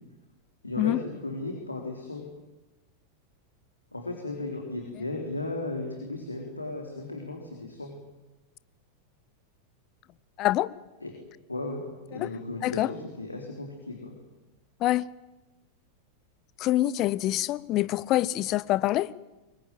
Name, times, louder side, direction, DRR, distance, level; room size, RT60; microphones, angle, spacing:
voice 1, 0.6-1.0 1.2-2.2 3.9-7.9 11.0-11.1 11.5-11.8 12.1-14.2, left 2 dB, 80° left, 3.8 m, -35 dB
voice 2, 10.4-10.7 12.1-12.3 12.6-12.9 14.8-15.1 16.6-19.1, left 15 dB, 35° left, 0.8 m, -25 dB
25.0 x 23.0 x 9.3 m
figure-of-eight pair, 90°, 0 cm